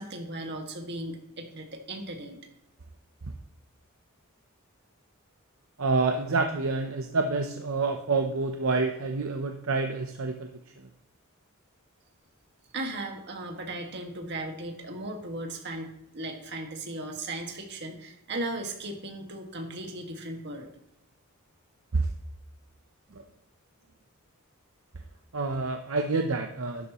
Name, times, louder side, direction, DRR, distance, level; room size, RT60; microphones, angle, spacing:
voice 1, 0.0-2.4 12.7-15.9 16.1-20.7, right 2 dB, 50° right, 3 dB, 1.9 m, -36 dB
voice 2, 5.8-10.5 10.8-10.9 21.9-22.1 23.1-23.2 25.3-26.9, right 3 dB, 70° right, 5 dB, 0.7 m, -28 dB
12.0 x 11.0 x 3.0 m, 0.77 s
head